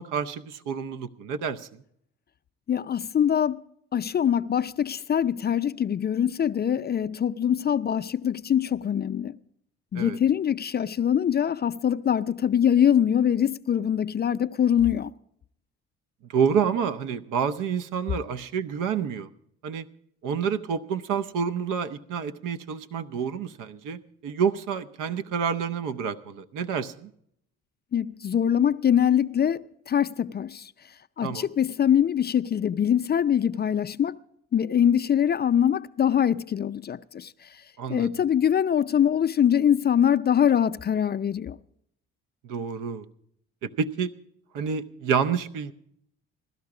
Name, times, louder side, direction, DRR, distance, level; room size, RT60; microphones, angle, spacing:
voice 1, 0.0-1.7 9.9-10.2 16.3-19.3 19.6-19.9 20.2-27.1 31.2-31.5 37.8-38.1 42.5-43.0 43.6-44.1 44.5-45.7, right 7 dB, 70° right, 0.8 m, -28 dB
voice 2, 2.7-3.6 3.9-9.3 9.9-15.1 27.9-30.7 31.2-34.2 34.5-37.3 37.9-41.6, left 9 dB, 30° left, 0.4 m, -23 dB
16.5 x 12.5 x 4.8 m
hypercardioid pair, 60°, 33 cm